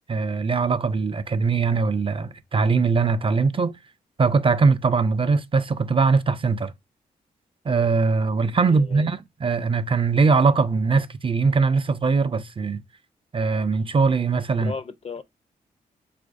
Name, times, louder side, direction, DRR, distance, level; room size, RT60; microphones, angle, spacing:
voice 1, 0.1-3.8 4.2-6.7 7.7-12.8 13.3-14.7, right 4 dB, 35° right, 0.4 m, -21 dB
voice 2, 8.7-9.1 14.5-15.2, left 5 dB, 40° left, 0.4 m, -35 dB
4.4 x 2.4 x 2.4 m
supercardioid pair, 50°, 16 cm